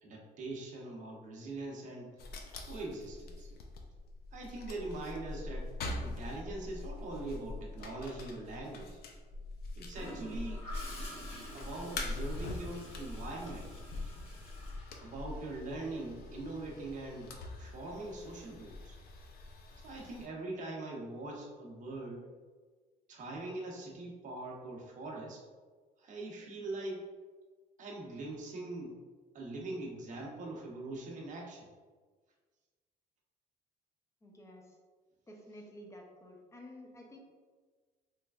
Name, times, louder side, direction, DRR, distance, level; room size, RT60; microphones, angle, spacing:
voice 1, 0.0-2.1 2.7-3.5 4.3-5.7 6.0-9.0 9.8-10.7 11.5-13.7 15.0-19.0 19.8-22.3 23.1-25.4 26.0-27.0 27.8-29.0 29.3-31.7, right 2 dB, 50° right, -1 dB, 0.8 m, -42 dB
sound 1, 2.2-20.3, left 2 dB, 65° left, 0.5 m, -43 dB
Gurgling / Toilet flush, 9.9-15.7 17.7-17.9, left 1 dB, 35° left, 1.4 m, -49 dB
voice 2, 34.2-34.8 35.3-37.2, left 1 dB, 15° left, 0 dB, 0.6 m, -51 dB
3.3 x 3.1 x 2.3 m, 1.4 s
cardioid pair, 110°, 17 cm